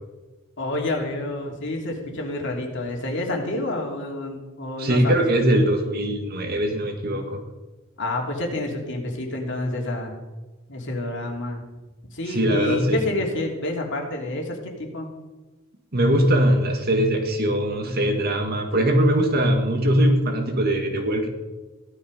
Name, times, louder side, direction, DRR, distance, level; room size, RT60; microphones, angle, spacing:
voice 1, 0.6-5.2 8.0-10.1 10.7-11.6 12.1-15.1, left 2 dB, 55° left, 1 dB, 3.0 m, -28 dB
voice 2, 4.8-7.4 12.3-13.0 15.9-21.3, right 1 dB, 45° right, 4 dB, 1.9 m, -21 dB
16.0 x 12.0 x 5.3 m, 1.2 s
head